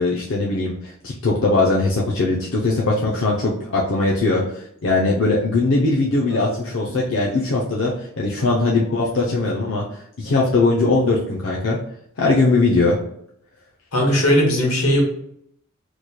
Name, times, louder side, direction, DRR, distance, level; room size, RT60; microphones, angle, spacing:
voice 1, 0.0-9.8 10.2-11.8 12.2-13.0, left 3 dB, 60° left, -3 dB, 0.5 m, -20 dB
voice 2, 13.9-15.0, equal, 85° left, -1 dB, 1.2 m, -19 dB
3.1 x 2.1 x 4.1 m, 0.73 s
head